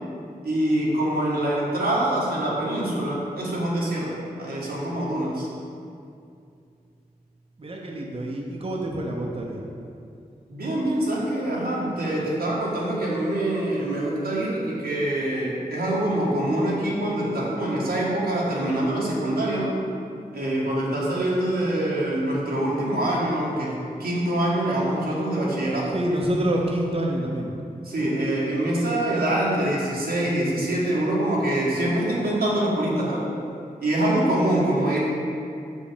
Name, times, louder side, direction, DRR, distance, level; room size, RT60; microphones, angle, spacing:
voice 1, 0.4-4.1 4.4-5.5 10.5-19.7 20.3-26.0 27.8-33.2 33.8-35.0, right 1 dB, 85° right, -6 dB, 1.6 m, -25 dB
voice 2, 7.6-9.7 25.8-27.5, right 1 dB, 40° right, -1 dB, 0.8 m, -27 dB
6.0 x 5.3 x 5.1 m, 2.5 s
cardioid pair, 45°, 16 cm